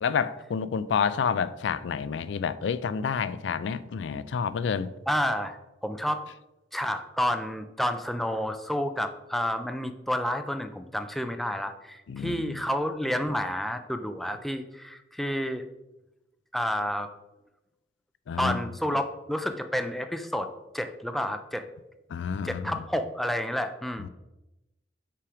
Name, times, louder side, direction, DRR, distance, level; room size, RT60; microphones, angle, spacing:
voice 1, 0.0-4.9 12.1-12.6 18.3-18.6 18.9-19.0 22.1-22.8 24.0-24.1, left 6 dB, 85° left, 0.4 m, -29 dB
voice 2, 5.1-5.6 5.8-6.3 6.7-15.7 16.5-17.1 18.4-21.7 22.4-24.1, equal, ahead, 0.4 m, -30 dB
5.7 x 4.8 x 5.0 m
head